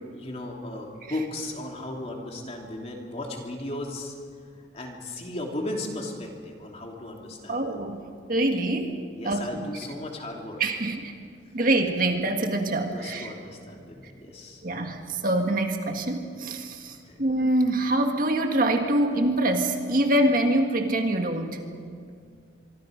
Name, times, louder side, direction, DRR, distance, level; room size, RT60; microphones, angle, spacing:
voice 1, 0.1-4.1 4.7-7.7 9.1-10.6 12.9-14.6 16.9-17.1, left 1 dB, 35° left, 0 dB, 3.1 m, -36 dB
voice 2, 7.5-9.0 9.2-9.7 10.6-11.1 11.5-13.3 14.6-21.6, right 1 dB, 50° right, 4 dB, 1.8 m, -25 dB
25.0 x 24.0 x 5.2 m, 2.2 s
head